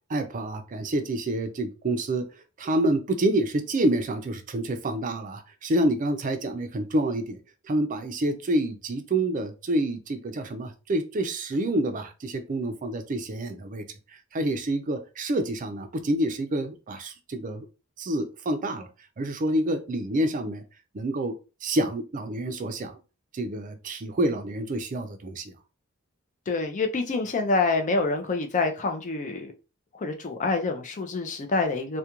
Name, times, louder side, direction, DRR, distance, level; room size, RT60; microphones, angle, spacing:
voice 1, 0.1-2.3 2.6-7.4 7.7-13.9 14.3-17.7 18.0-18.9 19.2-20.6 20.9-21.4 21.6-23.0 23.3-25.4, right 1 dB, 40° right, 0.4 m, -27 dB
voice 2, 26.5-29.5 29.9-32.0, left 3 dB, 35° left, 0.5 m, -26 dB
2.4 x 2.2 x 2.9 m
head